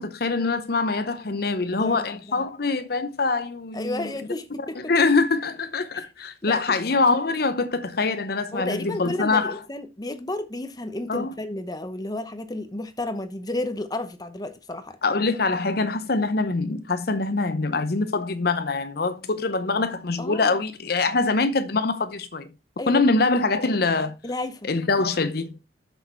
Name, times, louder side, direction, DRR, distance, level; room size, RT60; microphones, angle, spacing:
voice 1, 0.0-4.3 4.8-9.6 11.1-11.3 15.0-22.5 22.9-24.1 24.6-25.5, left 3 dB, 55° left, 0.7 m, -24 dB
voice 2, 3.7-4.8 5.9-6.0 6.4-6.6 8.5-15.0 20.2-20.6 22.8-23.0 24.2-24.7, left 2 dB, 20° left, 0.8 m, -32 dB
7.9 x 6.4 x 4.4 m
head